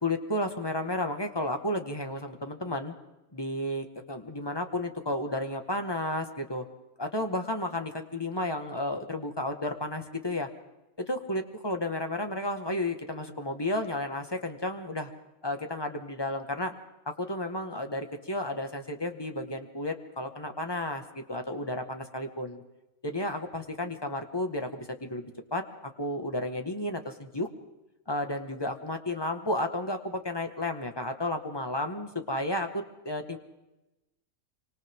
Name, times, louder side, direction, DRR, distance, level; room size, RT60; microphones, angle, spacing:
voice 1, 0.0-2.9 3.3-6.6 7.0-10.5 11.0-15.1 15.4-16.7 17.0-22.6 23.0-27.5 28.1-33.4, left 1 dB, 15° left, 5 dB, 1.8 m, -32 dB
27.5 x 25.5 x 3.8 m, 0.96 s
omnidirectional pair, 1.6 m